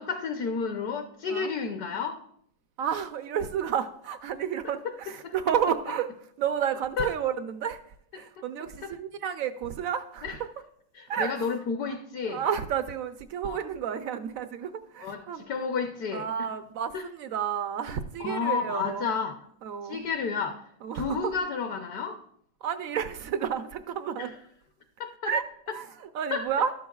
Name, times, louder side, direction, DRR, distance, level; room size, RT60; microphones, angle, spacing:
voice 1, 0.0-2.2 5.2-5.3 7.0-7.1 8.1-8.2 8.8-8.9 10.2-10.4 10.9-12.4 13.4-13.6 15.0-16.5 16.9-17.0 18.2-19.4 19.8-20.6 20.9-22.2 24.2-24.3 25.0-25.3 26.3-26.5, left 5 dB, 65° left, 5 dB, 1.2 m, -31 dB
voice 2, 2.8-6.1 6.4-7.8 8.1-10.5 11.1-11.4 12.2-15.4 16.1-19.1 19.6-20.1 20.8-21.2 22.6-24.3 25.2-25.4 25.7-26.7, right 8 dB, 70° right, 10 dB, 0.8 m, -31 dB
12.5 x 12.0 x 2.3 m, 0.68 s
omnidirectional pair, 1.9 m